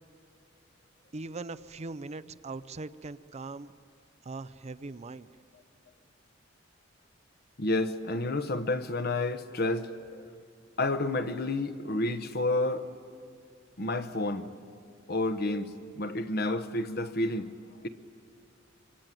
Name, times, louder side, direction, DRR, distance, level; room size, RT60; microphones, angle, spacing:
voice 1, 1.1-3.7 4.2-5.3, right 3 dB, 35° right, 0.6 m, -40 dB
voice 2, 7.6-10.3 10.8-12.9 13.8-14.5 15.1-17.5, left 2 dB, 55° left, 1.1 m, -30 dB
25.0 x 24.5 x 9.1 m
head